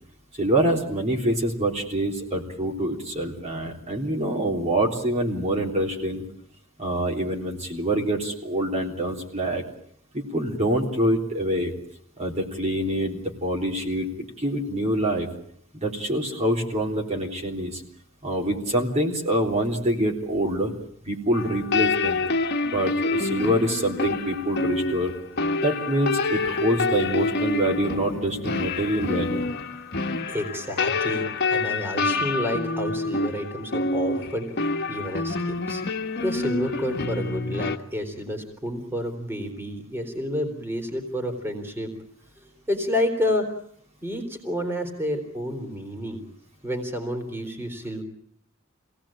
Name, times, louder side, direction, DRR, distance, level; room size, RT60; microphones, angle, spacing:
voice 1, 0.4-6.3 6.8-9.6 10.1-11.7 12.2-15.3 15.8-17.8 18.2-20.7 21.1-22.2 22.7-25.1 25.6-29.4, right 1 dB, 35° right, 0 dB, 3.6 m, -25 dB
sound 1, 21.3-37.8, left 3 dB, 55° left, 1.5 m, -27 dB
voice 2, 30.3-34.5 34.9-35.8 36.2-41.9 42.4-43.6 44.0-46.2 46.6-48.0, left 1 dB, 10° right, 4 dB, 3.6 m, -29 dB
26.0 x 18.0 x 8.8 m, 0.67 s
head